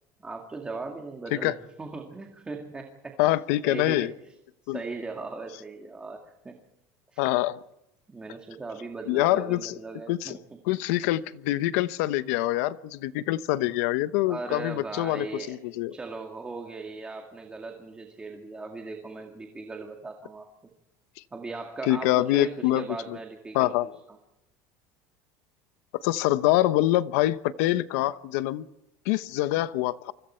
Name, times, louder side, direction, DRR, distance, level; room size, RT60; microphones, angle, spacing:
voice 1, 0.2-3.4 3.6-4.3 4.6-6.6 7.1-7.2 8.1-10.4 14.3-15.6 15.9-20.5 21.3-23.7 24.1-24.2, right 3 dB, 10° right, 3 dB, 2.1 m, -38 dB
voice 2, 3.2-4.1 4.7-4.8 7.2-7.6 9.1-9.8 10.1-10.4 10.7-15.9 21.9-23.2 23.5-23.9 26.0-28.7 29.0-30.1, left 15 dB, 80° left, 14 dB, 1.0 m, -25 dB
28.5 x 25.0 x 4.5 m, 0.89 s
cardioid pair, 155°, 8 cm